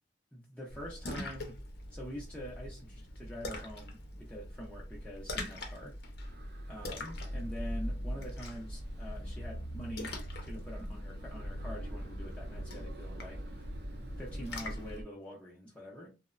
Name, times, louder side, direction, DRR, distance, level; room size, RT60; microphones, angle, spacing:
voice 1, 0.3-1.6 1.9-6.0 6.7-10.1 10.4-13.7 14.2-16.1, equal, 5° left, 0.5 m, -45 dB
Splash splatter, 0.7-15.0, left 1 dB, 60° left, 0.6 m, -42 dB
sound 1, 6.2-15.0, equal, 60° right, 0.5 m, -46 dB
2.9 x 2.0 x 2.4 m
head